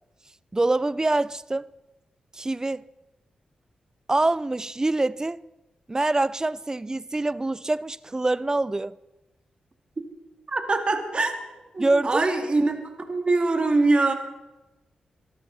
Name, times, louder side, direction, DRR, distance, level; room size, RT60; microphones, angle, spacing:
voice 1, 0.5-1.7 2.3-2.9 4.1-5.4 5.9-8.9 11.8-12.2, right 2 dB, 25° right, 0.5 m, -25 dB
voice 2, 10.5-11.3 11.7-12.8 13.1-14.1, right 3 dB, 45° right, 2.6 m, -23 dB
24.0 x 12.5 x 4.2 m
cardioid pair, 50°, 3 cm